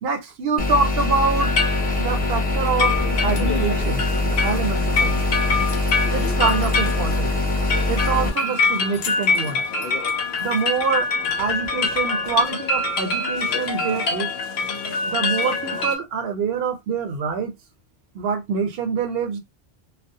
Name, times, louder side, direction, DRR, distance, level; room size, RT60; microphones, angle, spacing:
voice 1, 0.0-1.5 2.0-2.9 3.2-5.7 6.1-7.3 7.9-9.6 10.4-11.1 11.4-14.3 15.1-17.5 18.1-19.4, right 5 dB, 75° right, 0.8 m, -25 dB
sound 1, 0.6-8.3, left 2 dB, 10° left, 0.5 m, -23 dB
sound 2, 1.4-16.0, left 4 dB, 75° left, 0.8 m, -25 dB
2.3 x 2.0 x 2.6 m
omnidirectional pair, 1.0 m